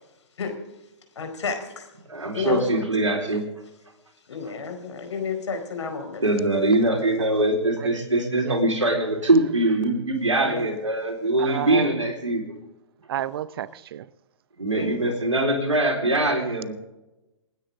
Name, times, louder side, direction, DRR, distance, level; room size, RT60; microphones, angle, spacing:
voice 1, 1.1-1.9 2.3-2.9 4.3-6.2 10.4-10.7 14.7-15.1, left 5 dB, 70° left, 4.6 m, -31 dB
voice 2, 2.1-3.4 6.2-12.6 14.6-16.7, right 2 dB, 90° right, 4.0 m, -22 dB
voice 3, 11.4-11.9 13.1-14.1, right 11 dB, 50° right, 0.7 m, -30 dB
27.5 x 10.0 x 3.7 m
figure-of-eight pair, 120°, 15 cm